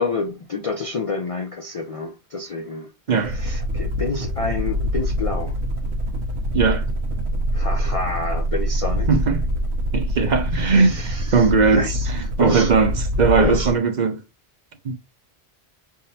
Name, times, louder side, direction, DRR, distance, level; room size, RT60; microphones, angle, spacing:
voice 1, 0.0-2.9 3.2-5.6 7.5-9.1 10.5-12.1 12.4-12.7 13.4-13.7, left 3 dB, 50° left, 0.4 m, -28 dB
sound 1, 3.2-13.8, equal, 80° right, 1.1 m, -25 dB
voice 2, 6.5-6.9 9.1-9.4 9.9-14.2 14.8-14.9, right 5 dB, 50° right, 0.7 m, -19 dB
5.3 x 3.5 x 2.7 m
omnidirectional pair, 1.1 m